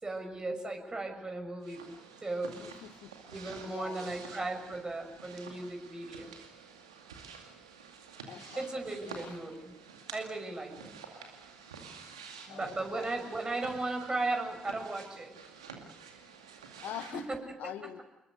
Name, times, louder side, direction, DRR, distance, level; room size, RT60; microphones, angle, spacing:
voice 1, 0.0-1.9 2.2-2.7 3.3-6.3 8.6-9.7 10.1-10.9 12.5-15.3 17.1-17.4 17.6-17.7, right 2 dB, 25° right, 5 dB, 6.4 m, -36 dB
sound 1, 1.6-17.3, right 5 dB, 85° right, 2.3 m, -50 dB
voice 2, 2.6-3.1 3.6-4.2 8.3-8.7 9.0-9.4 12.5-13.1 16.8-17.3 17.6-18.0, left 11 dB, 65° left, 11 dB, 1.7 m, -44 dB
27.0 x 21.5 x 6.7 m, 0.96 s
figure-of-eight pair, 40°, 3 cm